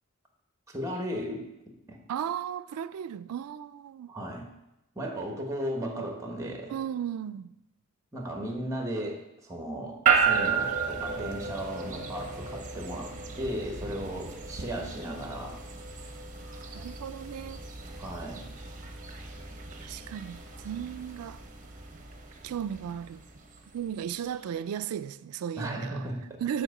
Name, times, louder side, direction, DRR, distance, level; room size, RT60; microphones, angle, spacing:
voice 1, 0.7-1.5 1.9-2.0 4.1-4.5 4.9-6.7 8.1-15.6 18.0-18.4 25.6-26.6, equal, 15° right, 1.1 m, -36 dB
voice 2, 2.1-4.1 6.7-7.5 16.7-17.6 19.8-21.4 22.4-23.2 23.7-26.1 26.4-26.6, right 9 dB, 80° right, 0.3 m, -35 dB
sound 1, 10.1-24.3, right 6 dB, 35° right, 0.9 m, -33 dB
7.6 x 4.3 x 6.5 m
head